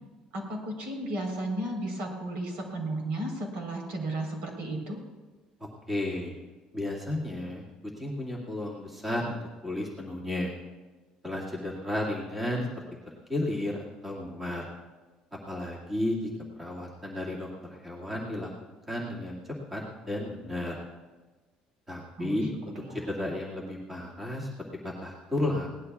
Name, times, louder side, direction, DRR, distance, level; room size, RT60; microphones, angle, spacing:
voice 1, 0.3-5.0 22.2-22.5 22.7-23.1, right 1 dB, 65° right, 2 dB, 3.9 m, -34 dB
voice 2, 5.9-6.3 6.7-7.6 8.0-9.4 9.6-10.5 11.2-12.7 13.3-14.6 15.5-16.3 16.6-18.5 18.9-19.4 19.7-20.8 21.9-24.5 24.8-25.7, left 1 dB, 5° right, -4 dB, 2.1 m, -33 dB
21.5 x 18.0 x 2.4 m, 1.2 s
cardioid pair, 175°, 2 cm